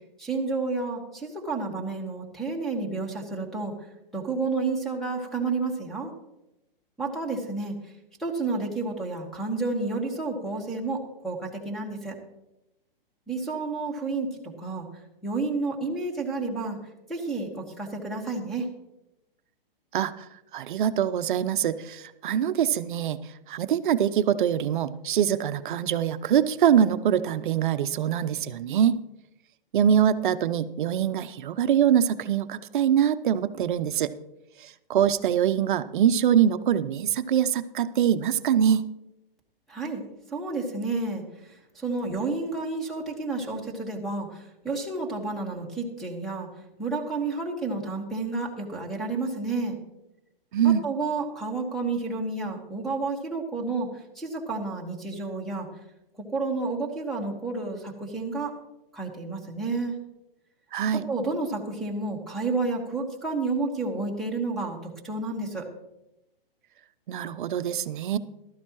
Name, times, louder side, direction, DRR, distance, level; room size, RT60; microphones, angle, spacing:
voice 1, 0.2-3.7 4.1-6.1 7.0-7.7 8.2-12.2 13.3-14.9 15.2-16.8 17.1-18.7 39.7-46.5 46.8-49.8 50.6-55.7 56.3-58.6 58.9-60.0 61.1-65.7, right 3 dB, ahead, 0 dB, 1.6 m, -30 dB
voice 2, 19.9-20.3 20.5-23.2 23.5-29.0 29.7-34.1 34.6-38.9 50.5-50.8 60.7-61.0 67.1-68.2, right 9 dB, 60° right, 13 dB, 0.6 m, -24 dB
14.5 x 12.5 x 3.0 m, 0.90 s
hypercardioid pair, 140°, 29 cm